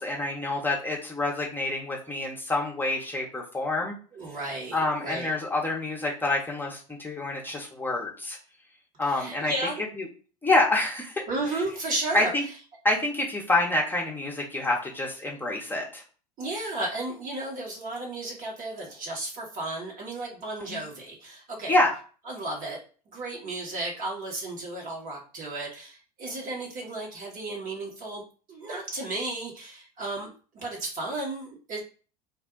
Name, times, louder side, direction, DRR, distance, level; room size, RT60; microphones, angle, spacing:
voice 1, 0.0-3.9 4.7-8.4 9.0-9.5 10.0-10.1 10.4-11.2 12.1-12.4 12.8-16.0 20.6-20.8 21.7-21.9, left 2 dB, 10° left, -2 dB, 0.9 m, -27 dB
voice 2, 4.1-5.3 9.0-9.8 11.3-12.3 16.4-21.8 22.3-22.8 23.1-28.2 28.5-31.8, right 2 dB, 40° right, -2 dB, 1.5 m, -34 dB
2.6 x 2.2 x 3.8 m, 0.38 s
hypercardioid pair, 75°, 20 cm